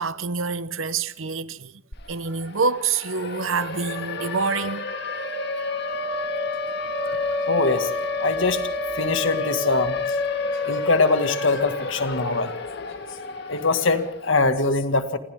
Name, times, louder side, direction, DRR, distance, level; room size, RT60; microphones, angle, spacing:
voice 1, 0.0-1.7 2.1-4.8 7.1-7.2, right 5 dB, 75° right, 0.9 m, -26 dB
Siren, 1.9-2.0 2.3-14.4, left 3 dB, 55° left, 1.9 m, -29 dB
voice 2, 7.5-7.9 8.2-8.6 9.0-10.2 10.6-12.6 13.5-15.2, left 3 dB, 70° left, 2.0 m, -22 dB
28.5 x 27.5 x 3.7 m
head